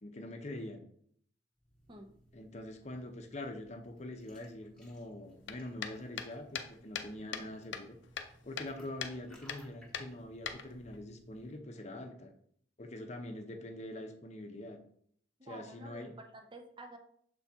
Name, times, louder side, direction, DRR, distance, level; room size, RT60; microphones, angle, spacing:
voice 1, 0.0-0.8 2.3-8.0 8.4-12.3 12.8-14.8 15.4-16.1, left 1 dB, 35° left, 5 dB, 0.7 m, -44 dB
sound 1, 1.6-11.6, equal, 5° left, 1.3 m, -62 dB
sound 2, 5.5-7.5 7.7-8.7 9.0-9.2 9.5-9.6 9.9-11.0, left 7 dB, 75° left, 0.6 m, -40 dB
voice 2, 15.4-17.0, right 2 dB, 25° right, 3 dB, 0.7 m, -50 dB
6.9 x 4.2 x 3.6 m, 0.64 s
head